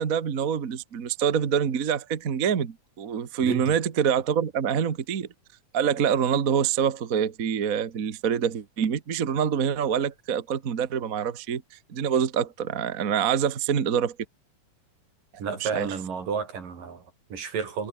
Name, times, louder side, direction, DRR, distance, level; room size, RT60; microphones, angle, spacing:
voice 1, 0.0-5.3 5.7-11.6 11.9-14.1 15.6-15.9, right 8 dB, 40° right, 1.2 m, -26 dB
voice 2, 3.4-3.8 15.4-17.9, right 6 dB, 80° right, 5.9 m, -32 dB
omnidirectional pair, 3.8 m